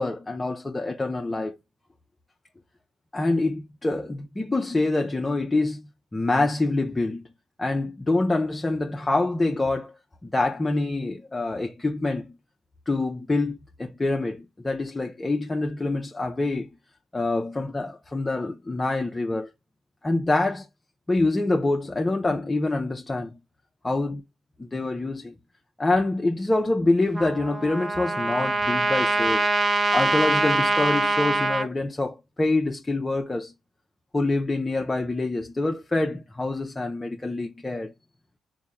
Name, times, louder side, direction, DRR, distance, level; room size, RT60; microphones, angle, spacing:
voice 1, 0.0-1.6 3.1-5.8 6.1-7.2 7.6-9.9 10.2-12.4 12.9-16.7 17.1-19.5 20.0-20.7 21.1-23.4 23.8-24.2 24.6-25.3 25.8-29.5 29.9-33.5 34.1-37.9, left 2 dB, 20° left, 0.5 m, -26 dB
Trumpet, 27.1-31.7, right 2 dB, 30° right, 0.6 m, -24 dB
3.6 x 2.1 x 4.0 m
cardioid pair, 90°, 0 cm